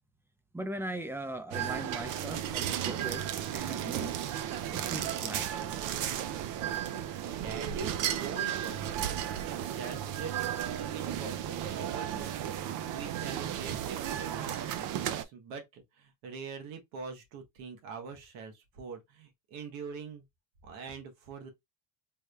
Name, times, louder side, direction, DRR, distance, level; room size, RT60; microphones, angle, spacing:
voice 1, 0.5-4.1 4.7-5.7, right 1 dB, 5° right, 0.4 m, -40 dB
sound 1, 1.5-15.2, right 10 dB, 65° right, 0.5 m, -34 dB
voice 2, 6.8-12.3 12.7-20.2 20.6-21.5, right 5 dB, 85° right, 1.2 m, -44 dB
3.5 x 2.2 x 3.2 m
cardioid pair, 115°, 33 cm